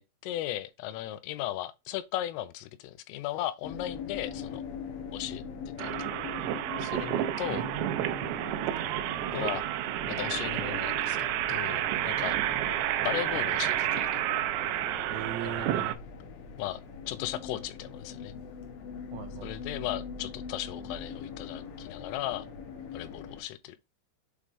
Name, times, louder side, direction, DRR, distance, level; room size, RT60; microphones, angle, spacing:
voice 1, 0.0-4.6 5.1-5.9 6.8-7.6 9.3-9.6 10.1-12.4 13.0-14.2 15.4-15.9 16.6-18.3 19.4-22.5 22.9-23.8, left 13 dB, 90° left, 3.3 m, -36 dB
sound 1, 3.6-23.4, left 6 dB, 70° left, 3.3 m, -42 dB
sound 2, 5.8-15.9, right 13 dB, 90° right, 2.6 m, -30 dB
voice 2, 7.5-8.3 15.1-16.0 19.1-19.5, right 9 dB, 70° right, 2.7 m, -39 dB
8.3 x 3.7 x 3.3 m
omnidirectional pair, 5.8 m